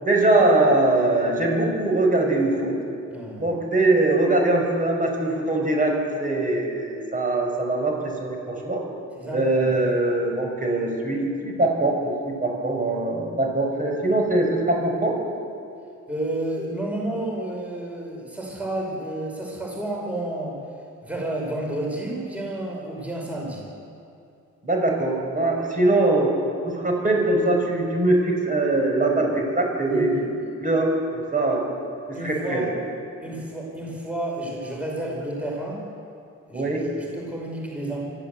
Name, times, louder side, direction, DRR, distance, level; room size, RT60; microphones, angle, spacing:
voice 1, 0.0-2.8 3.4-8.8 9.3-15.1 24.6-26.3 26.6-31.7 32.1-32.7 36.5-36.9, right 2 dB, 25° right, 0 dB, 5.9 m, -22 dB
voice 2, 3.1-3.4 9.2-9.7 16.1-20.6 21.0-23.7 29.1-29.3 29.8-30.3 32.1-32.7 33.2-35.8 36.5-36.7 37.0-38.0, right 1 dB, 5° right, -2 dB, 5.5 m, -31 dB
24.5 x 14.5 x 8.2 m, 2.6 s
cardioid pair, 90°, 30 cm